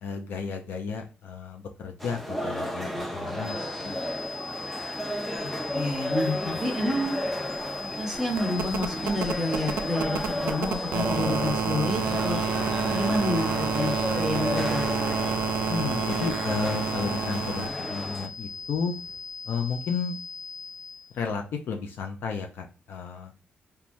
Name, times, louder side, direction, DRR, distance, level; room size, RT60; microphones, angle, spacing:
voice 1, 0.0-4.0 4.5-4.6 15.7-18.9 19.5-20.1 21.1-23.3, left 5 dB, 70° left, 4 dB, 0.4 m, -33 dB
sound 1, 2.0-18.3, equal, ahead, 0.4 m, -33 dB
sound 2, 3.4-21.1, left 4 dB, 90° left, 0.9 m, -39 dB
voice 2, 5.4-7.1 7.8-12.4 12.8-14.9, left 1 dB, 15° right, 0 dB, 0.8 m, -29 dB
sound 3, 6.5-6.6 6.8-17.7 19.1-19.2, right 7 dB, 85° right, 0.3 m, -30 dB
3.1 x 2.2 x 2.5 m, 0.34 s
cardioid pair, 110°, 4 cm